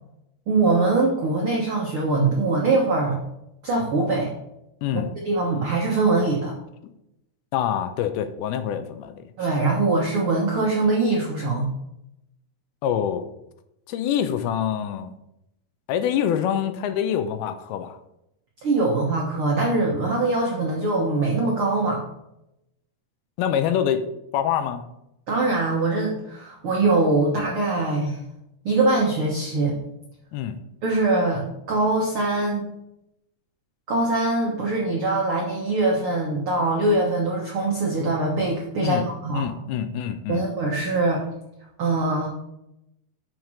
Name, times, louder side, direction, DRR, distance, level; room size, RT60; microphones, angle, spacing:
voice 1, 0.5-3.2 3.6-4.3 5.2-6.5 9.4-11.7 18.6-22.0 25.3-28.2 28.6-29.8 30.8-32.7 33.9-39.5 40.3-41.2 41.8-42.3, right 2 dB, 75° right, -2 dB, 1.2 m, -22 dB
voice 2, 4.8-5.1 7.5-9.2 12.8-13.3 13.9-15.1 15.9-18.0 23.4-24.1 24.3-24.8 30.3-30.6 38.8-39.0 39.3-40.4, left 9 dB, 90° left, 10 dB, 2.6 m, -25 dB
6.6 x 6.3 x 6.1 m, 0.84 s
omnidirectional pair, 4.4 m